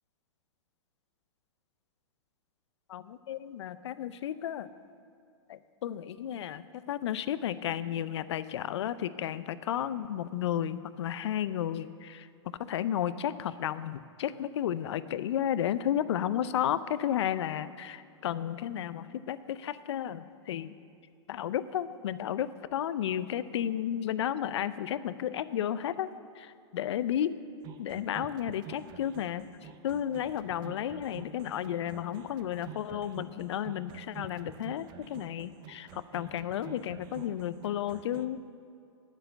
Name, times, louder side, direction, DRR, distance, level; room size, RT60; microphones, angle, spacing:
voice 1, 2.9-4.7 5.5-20.7 21.3-26.1 26.4-27.4 27.8-38.4, left 10 dB, 65° left, 15 dB, 0.5 m, -33 dB
sound 1, 27.6-38.3, right 9 dB, 30° right, 0.5 m, -49 dB
9.0 x 7.2 x 7.8 m, 2.5 s
hypercardioid pair, 130°, 15 cm